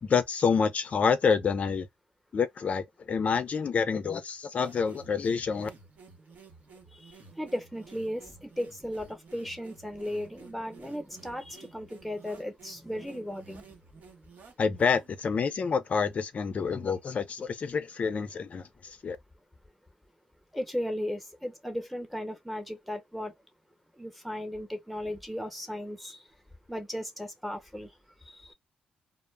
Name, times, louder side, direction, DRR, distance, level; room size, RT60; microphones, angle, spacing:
voice 1, 0.0-1.9 2.3-5.7 14.6-19.2, left 5 dB, 50° left, 0.4 m, -28 dB
sound 1, 4.6-15.2, right 4 dB, 65° right, 0.9 m, -53 dB
voice 2, 7.0-13.7 20.5-23.3 24.0-26.2 26.7-27.9 28.4-28.5, equal, ahead, 0.9 m, -36 dB
2.0 x 2.0 x 3.1 m
cardioid pair, 70°, 3 cm